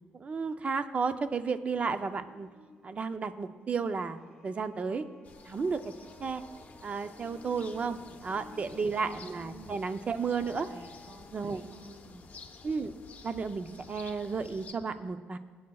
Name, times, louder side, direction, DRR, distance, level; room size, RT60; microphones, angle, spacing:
voice 1, 0.0-2.5 2.8-5.0 5.5-5.9 6.2-6.4 6.8-10.7 11.3-11.6 12.6-12.9 13.2-15.4, right 5 dB, 30° right, 10 dB, 0.5 m, -33 dB
sound 1, 0.9-11.3, left 2 dB, 10° right, 2.4 m, -56 dB
sound 2, 5.2-14.7, left 5 dB, 40° left, 0.8 m, -51 dB
voice 2, 8.1-8.9 9.3-9.9 10.7-12.3, right 3 dB, 80° right, 2 dB, 2.0 m, -53 dB
20.0 x 8.6 x 2.3 m, 1.5 s
cardioid pair, 145°, 4 cm